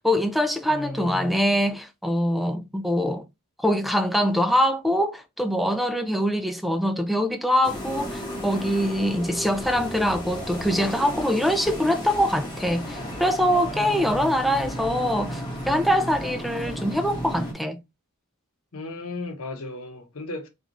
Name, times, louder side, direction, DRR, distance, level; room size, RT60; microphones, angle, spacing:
voice 1, 0.0-3.2 3.6-17.8, equal, ahead, 0.3 m, -24 dB
voice 2, 0.7-1.3 13.6-14.3 18.7-20.5, left 2 dB, 70° left, 1.0 m, -35 dB
sound 1, 7.6-17.5, equal, 20° left, 1.3 m, -34 dB
sound 2, 9.6-10.2 10.6-10.7 11.1-11.2 11.6-12.2 12.6-12.7 13.1-13.2 13.6-14.2 14.6-14.7 15.1-15.2 15.6-16.2 16.6-16.7 17.1-17.2 17.6-17.7, left 1 dB, 45° right, 1.3 m, -45 dB
5.1 x 2.5 x 2.9 m
head